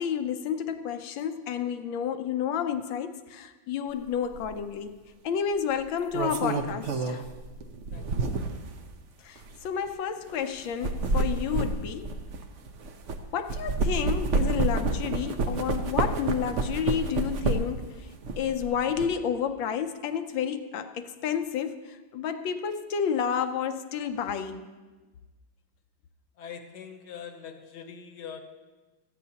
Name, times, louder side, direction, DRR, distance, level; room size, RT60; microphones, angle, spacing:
voice 1, 0.0-4.9 5.2-7.2 9.2-12.1 13.3-18.1 18.4-24.7, left 8 dB, 80° left, 1.4 m, -30 dB
sound 1, 4.3-4.5 5.8-8.7 9.4-9.5 10.6-13.2 13.5-17.8 18.2-19.1, right 3 dB, 60° right, 0.8 m, -29 dB
voice 2, 7.9-8.3 26.4-28.4, left 7 dB, 60° left, 1.5 m, -43 dB
18.0 x 13.5 x 2.9 m
omnidirectional pair, 2.1 m